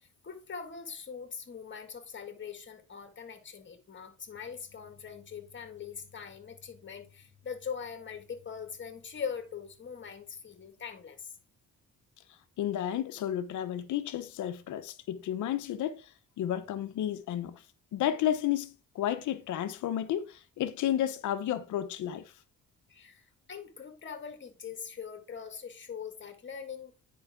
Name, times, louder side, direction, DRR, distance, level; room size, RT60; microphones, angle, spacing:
voice 1, 0.0-11.4 22.9-26.9, left 6 dB, 40° left, 1.9 m, -42 dB
voice 2, 12.6-16.0 16.4-17.6 17.9-22.2, left 11 dB, 75° left, 0.9 m, -32 dB
9.6 x 5.4 x 3.6 m
cardioid pair, 90°, 30 cm